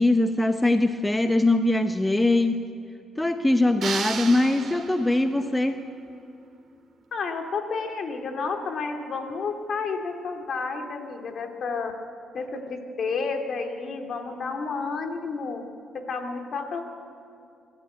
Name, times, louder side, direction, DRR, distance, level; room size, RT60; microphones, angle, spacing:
voice 1, 0.0-2.6 3.2-5.8, left 2 dB, 10° left, 8 dB, 0.8 m, -22 dB
sound 1, 3.8-5.3, right 6 dB, 55° right, 2.1 m, -33 dB
voice 2, 7.1-11.9 12.3-15.6 15.9-16.8, left 4 dB, 55° left, 4 dB, 2.4 m, -31 dB
25.5 x 12.5 x 9.2 m, 2.5 s
cardioid pair, 95°, 0 cm